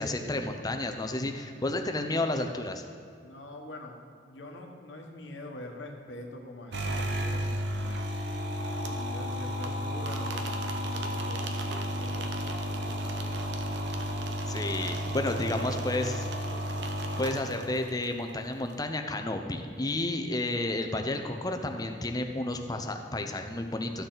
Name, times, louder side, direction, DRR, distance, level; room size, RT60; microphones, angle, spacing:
voice 1, 0.0-2.8 14.5-16.2 17.2-24.0, left 2 dB, 20° left, 5 dB, 0.6 m, -31 dB
voice 2, 3.2-4.0 4.2-8.1 8.8-14.2 15.0-16.8, left 1 dB, 85° left, 2 dB, 1.3 m, -45 dB
sound 1, 6.7-18.1, equal, 70° right, 0.8 m, -32 dB
13.5 x 6.6 x 4.0 m, 2.4 s
head